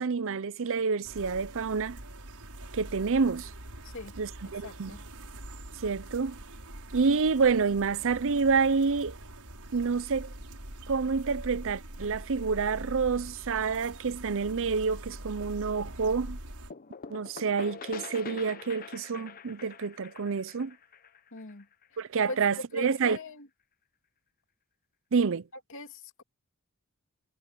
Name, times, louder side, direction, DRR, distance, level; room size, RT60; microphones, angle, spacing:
voice 1, 0.0-2.0 2.7-3.5 4.2-4.9 5.8-6.4 6.9-9.2 9.7-10.3 10.9-16.4 17.1-20.7 22.0-23.2 25.1-25.4, right 5 dB, 60° right, 0.6 m, -28 dB
sound 1, 1.0-16.7, right 1 dB, 85° right, 6.5 m, -44 dB
voice 2, 4.6-5.0 21.3-21.7 22.3-22.4 22.7-23.5 25.7-26.2, left 2 dB, 60° left, 2.6 m, -40 dB
sound 2, 16.7-22.3, left 5 dB, 40° left, 0.8 m, -44 dB
head